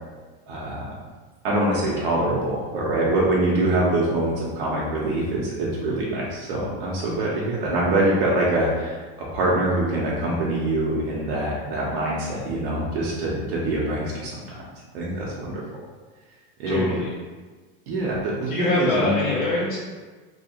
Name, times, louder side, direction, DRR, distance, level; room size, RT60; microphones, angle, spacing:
voice 1, 0.5-0.9 1.4-14.6 14.9-15.6 16.6-16.9 17.9-19.3, right 1 dB, 70° right, -5 dB, 0.7 m, -24 dB
voice 2, 16.7-17.1 18.5-19.8, left 2 dB, 30° left, -6 dB, 0.4 m, -24 dB
2.8 x 2.3 x 2.8 m, 1.3 s
supercardioid pair, 140°, 30 cm